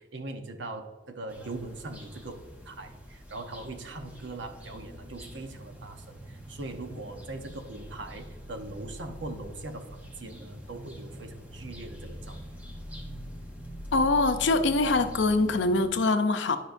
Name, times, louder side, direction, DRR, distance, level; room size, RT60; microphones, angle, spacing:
voice 1, 0.0-12.4, right 2 dB, 75° right, 6 dB, 0.8 m, -41 dB
sound 1, 1.3-15.9, equal, 10° right, 0.9 m, -44 dB
voice 2, 13.9-16.6, left 3 dB, 75° left, 8 dB, 0.6 m, -24 dB
10.5 x 5.4 x 2.6 m, 1.3 s
head